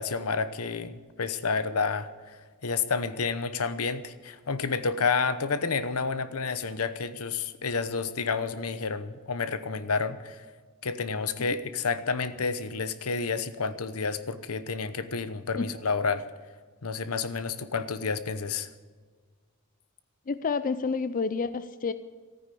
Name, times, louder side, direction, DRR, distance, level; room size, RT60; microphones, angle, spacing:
voice 1, 0.0-2.4 2.6-10.4 10.8-16.2 16.8-18.7, left 4 dB, 80° left, 13 dB, 0.9 m, -30 dB
voice 2, 20.3-21.9, left 4 dB, 40° left, 13 dB, 0.5 m, -29 dB
14.0 x 9.6 x 8.4 m, 1.5 s
head